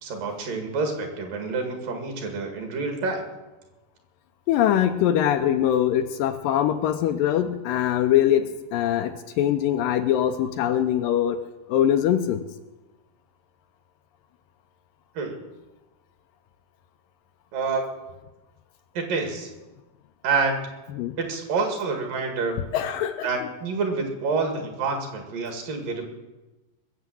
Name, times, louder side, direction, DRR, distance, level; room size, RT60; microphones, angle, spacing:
voice 1, 0.0-3.2 15.2-15.4 17.5-17.9 19.0-19.5 20.2-20.6 21.2-22.6 23.2-26.0, right 4 dB, 65° right, 4 dB, 3.6 m, -27 dB
voice 2, 4.5-11.4 11.7-12.4 21.0-21.2 22.7-23.5, left 10 dB, 80° left, 8 dB, 2.2 m, -22 dB
20.5 x 7.5 x 7.7 m, 1.1 s
omnidirectional pair, 4.3 m